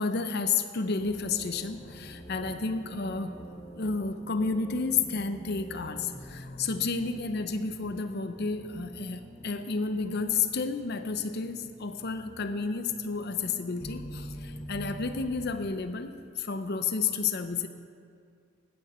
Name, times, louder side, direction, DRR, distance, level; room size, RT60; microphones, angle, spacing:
voice 1, 0.0-3.3 3.8-16.1 16.4-17.7, left 4 dB, 50° left, 9 dB, 0.7 m, -31 dB
sound 1, 1.0-15.7, equal, 15° left, 1.0 m, -46 dB
16.0 x 9.2 x 4.3 m, 2.2 s
head